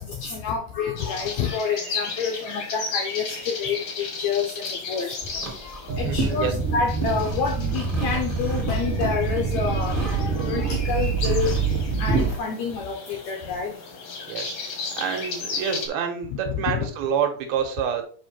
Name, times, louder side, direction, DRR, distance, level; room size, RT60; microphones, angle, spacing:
voice 1, 0.1-5.1 5.6-11.5 12.0-13.7 16.5-16.9, left 6 dB, 75° left, 2 dB, 1.7 m, -28 dB
sound 1, 1.0-15.9, left 4 dB, 50° left, 2.0 m, -35 dB
sound 2, 5.2-12.4, right 1 dB, 25° right, 1.1 m, -33 dB
sound 3, 5.9-12.3, right 5 dB, 65° right, 1.4 m, -26 dB
voice 2, 6.0-6.5 14.3-18.0, right 7 dB, 85° right, 5 dB, 3.1 m, -28 dB
5.7 x 5.6 x 4.4 m, 0.42 s
omnidirectional pair, 4.3 m